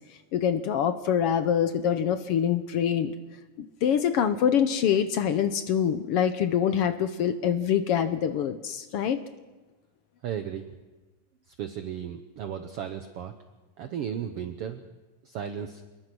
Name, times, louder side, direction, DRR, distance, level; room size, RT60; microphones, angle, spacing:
voice 1, 0.3-3.1 3.6-9.2, left 8 dB, 70° left, 10 dB, 1.4 m, -25 dB
voice 2, 10.2-10.7 11.5-13.3 13.8-14.8 15.2-15.8, right 9 dB, 65° right, 8 dB, 1.6 m, -35 dB
27.0 x 21.0 x 6.1 m, 1.2 s
omnidirectional pair, 3.6 m